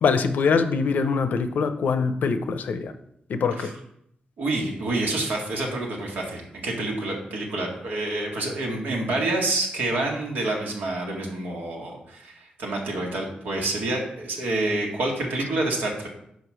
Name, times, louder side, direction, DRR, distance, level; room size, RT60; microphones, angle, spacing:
voice 1, 0.0-2.9 3.3-3.7, left 5 dB, 70° left, 9 dB, 0.6 m, -23 dB
voice 2, 4.4-16.1, right 2 dB, 90° right, -1 dB, 1.8 m, -28 dB
5.2 x 5.0 x 6.2 m, 0.74 s
wide cardioid pair, 110°, 3 cm